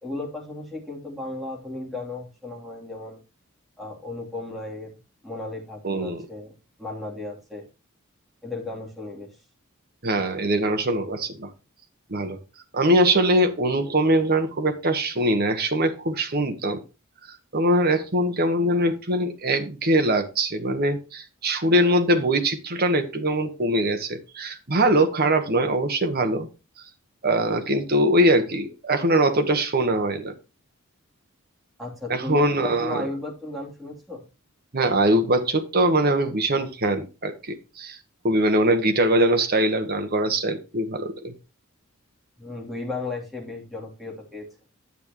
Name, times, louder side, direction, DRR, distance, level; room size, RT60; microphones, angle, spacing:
voice 1, 0.0-3.2 3.8-4.9 5.2-6.5 6.8-7.6 8.4-9.3 31.8-34.2 42.4-44.5, left 2 dB, ahead, -2 dB, 3.1 m, -35 dB
voice 2, 5.8-6.2 10.0-11.5 12.1-12.4 12.7-16.8 17.5-26.5 27.2-30.3 32.1-33.1 34.7-38.0 38.2-41.3, right 1 dB, 45° right, 7 dB, 1.4 m, -22 dB
9.8 x 8.4 x 3.0 m, 0.29 s
head